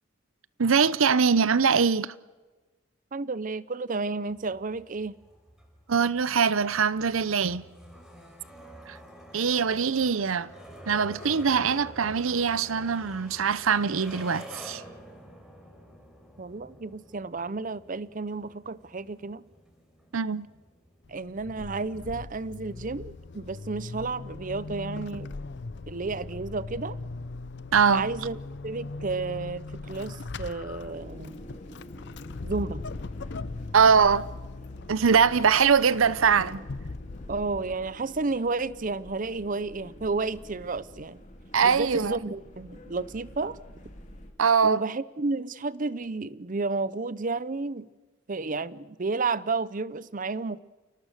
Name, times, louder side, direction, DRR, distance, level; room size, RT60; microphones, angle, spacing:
voice 1, 0.6-2.1 5.9-7.6 8.9-9.0 9.3-10.5 10.9-14.8 20.1-20.5 27.7-28.1 33.7-34.3 34.9-36.6 41.5-42.2 44.4-44.8, right 6 dB, 75° right, 0.7 m, -22 dB
voice 2, 3.1-5.2 16.4-19.4 21.1-25.3 25.9-27.0 27.9-28.4 28.6-31.4 32.4-32.9 37.3-41.2 41.6-43.6 44.6-47.9 48.3-50.6, right 3 dB, 40° right, 0.6 m, -32 dB
sound 1, 4.3-23.6, equal, ahead, 4.5 m, -49 dB
Vehicle / Accelerating revving vroom / Squeak, 21.1-38.3, left 3 dB, 55° left, 0.6 m, -40 dB
sound 2, 30.8-44.3, equal, 35° left, 2.5 m, -47 dB
28.5 x 18.5 x 6.6 m
head